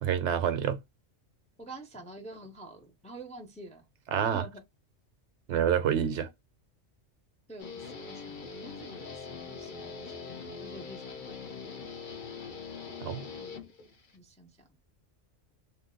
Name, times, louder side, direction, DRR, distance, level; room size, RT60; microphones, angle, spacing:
voice 1, 0.0-0.8 4.1-4.5 5.5-6.3 13.0-13.2, right 8 dB, 70° right, 0.8 m, -27 dB
voice 2, 1.6-3.8 4.3-4.6 6.1-6.2 7.5-11.4 13.3-13.9 14.1-14.5, right 2 dB, 10° left, 0.3 m, -48 dB
Guitar, 7.6-14.2, left 5 dB, 50° left, 0.7 m, -42 dB
2.7 x 2.1 x 3.7 m
omnidirectional pair, 1.3 m